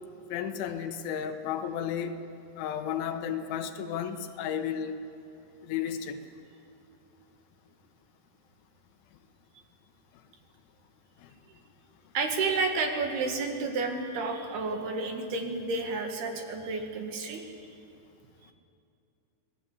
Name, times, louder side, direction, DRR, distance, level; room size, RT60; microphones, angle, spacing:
voice 1, 0.3-2.1 2.6-5.0 5.6-6.2, left 8 dB, 90° left, 7 dB, 3.7 m, -33 dB
voice 2, 12.1-17.5, right 3 dB, 65° right, 3 dB, 3.7 m, -31 dB
26.5 x 19.0 x 8.4 m, 2.6 s
omnidirectional pair, 5.3 m